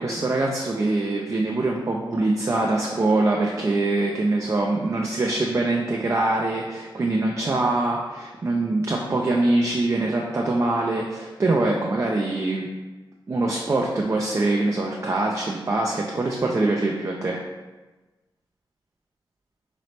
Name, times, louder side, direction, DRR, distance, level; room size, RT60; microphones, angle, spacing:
voice 1, 0.0-12.7 13.3-17.4, right 2 dB, 35° right, -1 dB, 0.4 m, -23 dB
3.1 x 3.0 x 4.2 m, 1.2 s
wide cardioid pair, 80°, 9 cm